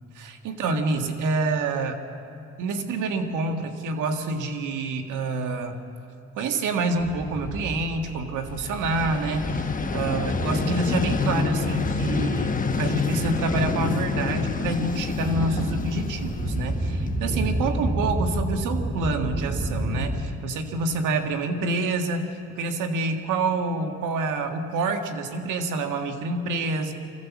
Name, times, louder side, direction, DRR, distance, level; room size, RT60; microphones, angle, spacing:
voice 1, 0.2-2.0 2.6-5.8 6.4-22.3 22.6-26.9, right 3 dB, 85° right, 5 dB, 1.8 m, -27 dB
sound 1, 6.9-20.2, right 1 dB, 20° right, 3.4 m, -31 dB
Vehicle, 8.5-17.5, left 4 dB, 25° left, 1.2 m, -28 dB
24.0 x 15.0 x 7.3 m, 2.6 s
cardioid pair, 90°, 30 cm